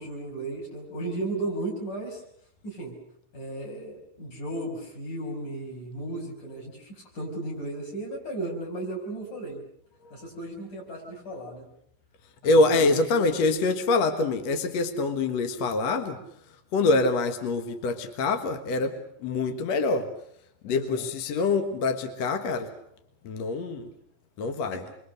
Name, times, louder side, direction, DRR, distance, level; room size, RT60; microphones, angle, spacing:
voice 1, 0.0-2.2 2.6-3.0 3.3-9.6 10.1-11.7 12.4-12.9 20.6-21.1 24.7-24.8, right 2 dB, 45° left, 0 dB, 7.2 m, -35 dB
voice 2, 12.4-16.2 16.7-20.1 20.6-22.7 23.2-23.9 24.4-24.8, left 3 dB, 60° left, 7 dB, 1.8 m, -25 dB
27.0 x 24.0 x 6.5 m, 0.69 s
omnidirectional pair, 5.0 m